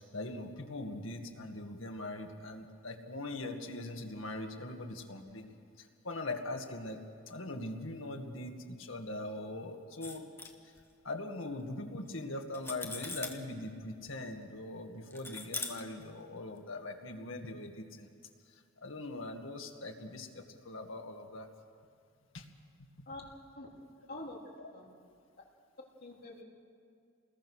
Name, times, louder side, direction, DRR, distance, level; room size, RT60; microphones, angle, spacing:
voice 1, 0.0-7.0 7.3-10.3 11.0-18.1 18.5-21.5 22.3-22.5 22.8-22.9, left 2 dB, 80° left, 4 dB, 1.9 m, -41 dB
sound 1, 10.0-10.8 12.1-12.2 12.5-13.4 15.1-16.0, left 3 dB, 10° left, 1.4 m, -40 dB
voice 2, 24.1-24.4 24.7-24.9 26.0-26.4, left 2 dB, 50° left, -2 dB, 3.5 m, -45 dB
28.5 x 20.5 x 6.4 m, 2.3 s
head